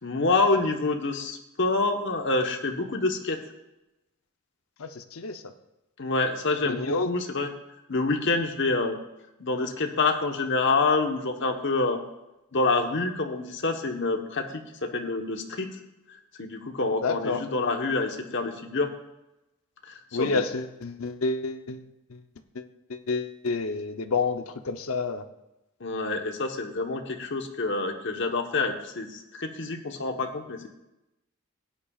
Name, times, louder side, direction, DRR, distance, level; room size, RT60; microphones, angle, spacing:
voice 1, 0.0-3.4 6.0-7.5 7.9-9.0 9.4-12.0 12.5-14.4 14.8-15.7 16.4-18.9 19.9-20.4 25.8-29.1 29.3-30.7, left 3 dB, 55° left, 4 dB, 1.1 m, -27 dB
voice 2, 4.8-5.5 6.6-7.1 17.0-17.4 20.1-21.8 22.1-22.2 22.5-22.6 22.9-25.2, left 3 dB, 80° left, 9 dB, 0.7 m, -29 dB
17.0 x 9.9 x 2.4 m, 0.94 s
head